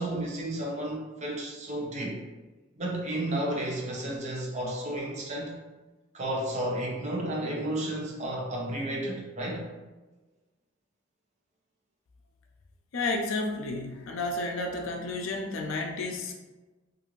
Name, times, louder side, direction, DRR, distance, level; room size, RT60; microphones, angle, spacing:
voice 1, 0.0-2.2 2.8-5.6 6.1-9.7, right 1 dB, 35° right, -2 dB, 0.6 m, -32 dB
voice 2, 12.9-16.3, left 2 dB, 85° left, 2 dB, 0.4 m, -31 dB
2.5 x 2.4 x 3.0 m, 1.2 s
head